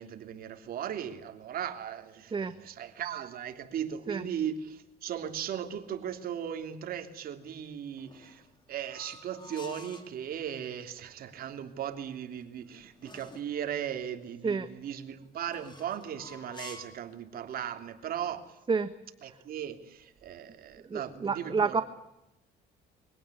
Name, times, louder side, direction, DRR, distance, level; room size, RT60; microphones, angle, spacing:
voice 1, 0.0-8.4 8.7-18.5 19.2-21.8, right 9 dB, 60° right, 7 dB, 3.1 m, -37 dB
sound 1, 8.0-10.1 12.1-13.6 15.5-17.1, left 3 dB, 25° left, 4.2 m, -49 dB
voice 2, 20.9-21.8, right 5 dB, 30° right, 10 dB, 1.3 m, -29 dB
24.0 x 17.5 x 9.9 m, 0.91 s
cardioid pair, 110°, 17 cm